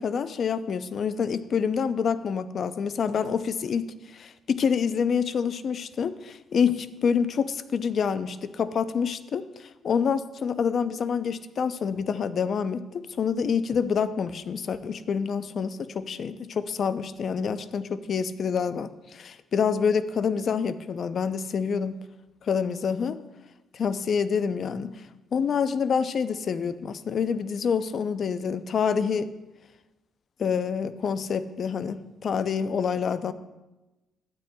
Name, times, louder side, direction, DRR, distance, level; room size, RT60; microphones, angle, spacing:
voice 1, 0.0-3.9 4.1-22.0 22.5-23.2 23.7-25.0 25.3-29.3 30.4-33.3, left 6 dB, 55° left, 13 dB, 0.5 m, -27 dB
12.5 x 10.0 x 2.3 m, 1.1 s
cardioid pair, 90°, 0 cm